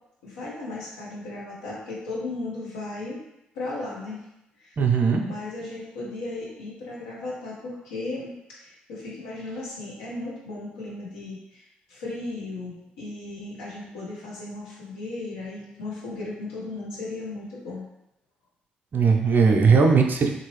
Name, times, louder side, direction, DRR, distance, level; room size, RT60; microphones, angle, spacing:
voice 1, 0.2-3.2 3.5-4.2 4.6-4.8 5.2-17.8, left 2 dB, 80° left, -6 dB, 0.9 m, -36 dB
voice 2, 4.8-5.2 18.9-20.3, right 5 dB, 45° right, 3 dB, 0.5 m, -18 dB
2.9 x 2.6 x 3.1 m, 0.87 s
hypercardioid pair, 40°, 4 cm